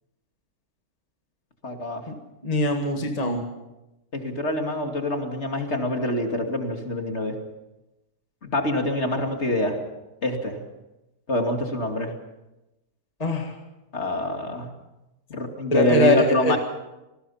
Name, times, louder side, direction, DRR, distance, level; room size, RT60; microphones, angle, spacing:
voice 1, 1.6-2.0 4.1-7.3 8.5-9.8 10.2-10.6 11.3-12.1 13.9-14.7 15.3-16.6, left 1 dB, 40° left, 3 dB, 2.8 m, -25 dB
voice 2, 2.4-3.4 13.2-13.6 15.7-16.6, left 1 dB, 25° left, 3 dB, 2.1 m, -23 dB
27.5 x 19.5 x 5.7 m, 0.99 s
omnidirectional pair, 1.8 m